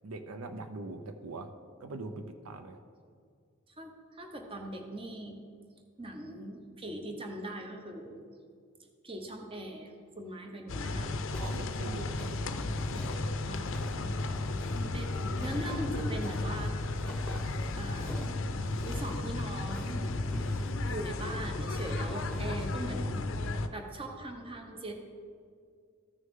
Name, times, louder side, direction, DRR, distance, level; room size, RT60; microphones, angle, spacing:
voice 1, 0.0-1.5 1.8-2.8 11.4-13.5 22.7-23.1, right 2 dB, 85° right, 8 dB, 0.6 m, -42 dB
voice 2, 3.8-5.4 6.0-8.2 9.0-11.1 13.5-14.1 14.7-16.7 17.3-17.4 17.8-18.2 18.8-20.2 20.9-23.3 23.7-24.9, right 1 dB, 25° right, 3 dB, 0.9 m, -40 dB
sound 1, 10.7-23.7, left 2 dB, 60° left, 0.5 m, -34 dB
sound 2, 11.3-22.5, left 1 dB, 5° left, 1.0 m, -48 dB
14.0 x 6.4 x 3.7 m, 2.2 s
head